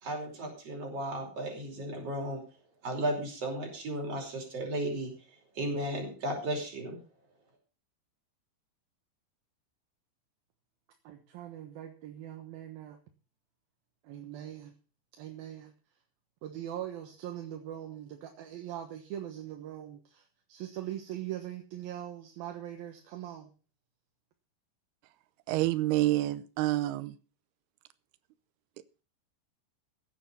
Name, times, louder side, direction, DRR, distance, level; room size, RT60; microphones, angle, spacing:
voice 1, 0.0-2.4 2.8-5.1 5.6-7.0, right 1 dB, 30° right, 1 dB, 5.6 m, -34 dB
voice 2, 11.0-13.0 14.0-14.7 15.1-15.7 16.4-23.5, right 11 dB, 65° right, 4 dB, 2.6 m, -41 dB
voice 3, 25.5-27.2, right 16 dB, 90° right, 13 dB, 2.2 m, -28 dB
16.0 x 9.4 x 5.4 m, 0.36 s
omnidirectional pair, 5.5 m